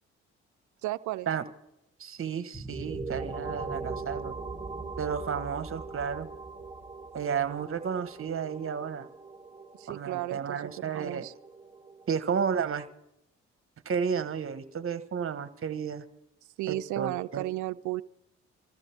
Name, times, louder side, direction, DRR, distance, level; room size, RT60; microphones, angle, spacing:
voice 1, 0.8-1.3 9.8-11.3 16.6-18.0, right 17 dB, 80° right, 15 dB, 0.6 m, -34 dB
voice 2, 2.0-4.3 5.0-6.3 7.1-9.1 9.9-11.3 12.1-12.9 13.8-16.0 16.7-17.4, right 7 dB, 45° right, 11 dB, 1.4 m, -32 dB
sound 1, 2.5-12.1, right 3 dB, 5° right, 3.2 m, -40 dB
23.5 x 14.0 x 3.5 m, 0.83 s
supercardioid pair, 60°, 29 cm